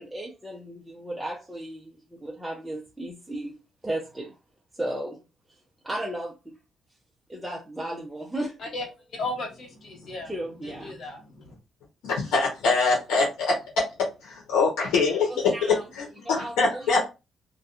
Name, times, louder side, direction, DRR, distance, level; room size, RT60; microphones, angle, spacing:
voice 1, 0.0-4.3 4.7-5.2 5.8-6.6 7.3-8.7 10.3-10.9 15.3-15.9 16.3-17.1, right 1 dB, 5° right, 0.5 m, -35 dB
voice 2, 8.6-10.3 10.6-11.6, left 2 dB, 60° left, 1.1 m, -36 dB
voice 3, 12.0-13.5 14.2-15.5 16.6-17.1, left 4 dB, 90° left, 0.9 m, -23 dB
2.6 x 2.3 x 2.4 m
cardioid pair, 90°, 0 cm